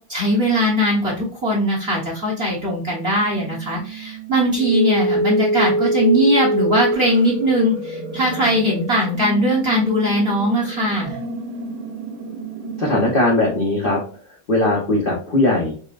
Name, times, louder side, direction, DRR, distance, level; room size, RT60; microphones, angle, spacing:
voice 1, 0.1-11.2, equal, 35° right, -4 dB, 1.1 m, -20 dB
sound 1, 3.1-13.1, right 1 dB, 80° right, 1.9 m, -26 dB
voice 2, 12.8-14.0 14.5-15.8, left 2 dB, 50° left, -3 dB, 0.6 m, -19 dB
5.3 x 2.2 x 2.5 m, 0.43 s
omnidirectional pair, 2.4 m